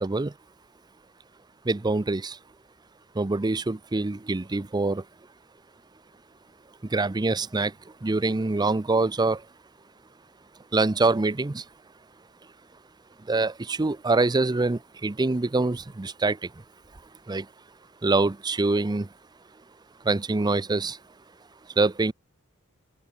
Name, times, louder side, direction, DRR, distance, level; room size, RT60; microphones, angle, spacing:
voice 1, 1.7-2.4 3.2-5.0 6.9-7.7 8.0-9.4 10.7-11.6 13.3-16.4 17.3-17.5 18.0-19.1 20.1-21.0 21.8-22.1, right 3 dB, 20° right, 0.5 m, -24 dB
open air
head